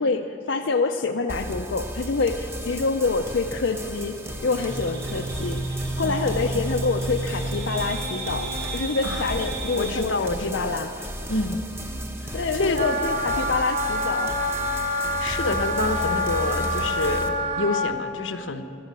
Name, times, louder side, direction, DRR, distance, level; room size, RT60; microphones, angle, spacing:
voice 1, 0.0-4.2 4.4-10.1 10.4-11.1 12.3-14.4, left 4 dB, 70° left, 3 dB, 0.6 m, -26 dB
sound 1, 1.3-17.3, equal, 15° right, 0.9 m, -34 dB
sound 2, 4.7-10.1, right 3 dB, 65° right, 2.7 m, -32 dB
voice 2, 6.0-6.6 9.0-9.3 9.7-10.7 11.3-11.6 12.6-12.8 14.9-18.6, left 2 dB, 90° left, 8 dB, 0.9 m, -28 dB
Wind instrument woodwind instrument, 12.7-17.9, left 1 dB, 40° right, 1.0 m, -26 dB
12.0 x 12.0 x 8.3 m, 2.7 s
head